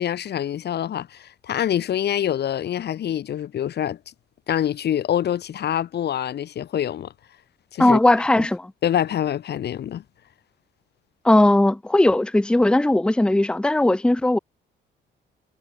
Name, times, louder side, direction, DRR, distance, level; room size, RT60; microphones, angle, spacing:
voice 1, 0.0-4.0 4.5-7.1 7.7-8.0 8.4-8.5 8.8-10.0, left 10 dB, 55° left, 0.8 m, -25 dB
voice 2, 7.8-8.7 11.2-14.4, left 1 dB, 5° left, 0.7 m, -18 dB
cardioid pair, 90°, 20 cm